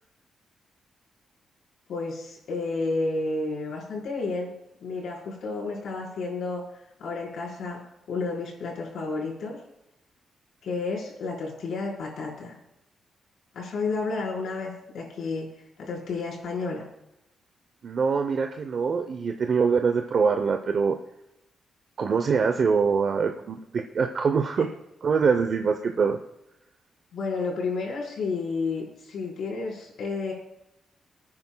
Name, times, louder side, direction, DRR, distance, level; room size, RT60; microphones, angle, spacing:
voice 1, 1.9-4.5 4.8-6.6 7.0-7.8 8.1-9.6 10.6-12.5 13.5-15.5 15.8-16.8 27.1-30.3, left 3 dB, 70° left, -2 dB, 4.4 m, -31 dB
voice 2, 17.8-20.9 22.0-24.7 25.0-26.2, right 5 dB, 45° right, 5 dB, 0.7 m, -24 dB
27.5 x 9.6 x 2.3 m, 0.88 s
wide cardioid pair, 160°, 0 cm